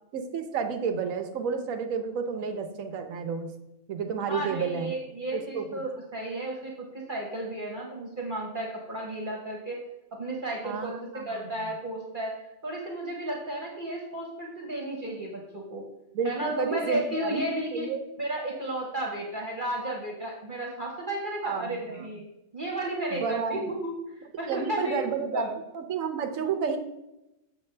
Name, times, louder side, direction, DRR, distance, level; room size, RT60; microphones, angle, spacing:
voice 1, 0.1-3.5 3.9-4.9 5.3-5.8 10.6-11.5 16.1-17.4 17.7-18.0 21.4-22.1 23.1-23.7 24.5-26.8, right 6 dB, 70° right, 6 dB, 1.2 m, -31 dB
voice 2, 4.2-9.8 10.1-10.9 11.2-12.3 12.6-15.8 16.2-17.9 18.2-22.2 22.5-25.0 25.3-25.5, right 1 dB, 40° right, -2 dB, 1.2 m, -33 dB
7.0 x 7.0 x 3.3 m, 0.90 s
omnidirectional pair, 1.5 m